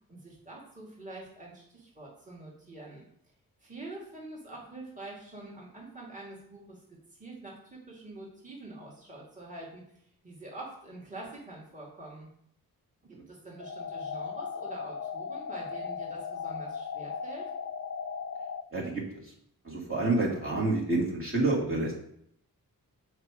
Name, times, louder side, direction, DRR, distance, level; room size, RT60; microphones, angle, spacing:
voice 1, 0.1-3.0 3.6-6.8 7.2-12.3 13.0-17.5, right 2 dB, 20° right, -4 dB, 2.2 m, -45 dB
sound 1, 13.6-18.6, left 6 dB, 40° left, 0.6 m, -37 dB
voice 2, 18.7-19.0 19.6-21.9, right 2 dB, 35° right, -4 dB, 2.3 m, -28 dB
6.5 x 4.9 x 4.9 m, 0.70 s
cardioid pair, 75°, 37 cm